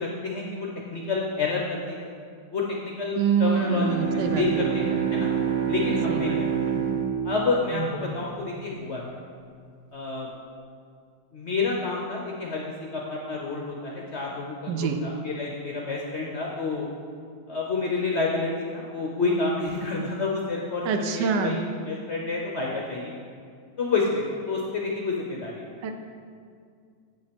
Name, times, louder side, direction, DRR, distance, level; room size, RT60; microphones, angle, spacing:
voice 1, 0.0-2.1 2.5-5.3 5.7-6.4 7.2-9.2 9.9-10.3 11.3-12.6 12.9-16.9 17.5-21.6 21.9-23.1 23.8-25.6, left 3 dB, 55° left, -1 dB, 0.7 m, -29 dB
voice 2, 3.2-5.1 6.1-6.9 7.7-8.2 14.7-15.1 20.8-21.7 22.7-22.8 25.8-25.9, right 5 dB, 75° right, 6 dB, 1.2 m, -27 dB
Bowed string instrument, 3.5-8.6, right 7 dB, 30° right, 1.3 m, -27 dB
8.0 x 5.5 x 5.1 m, 2.2 s
omnidirectional pair, 2.0 m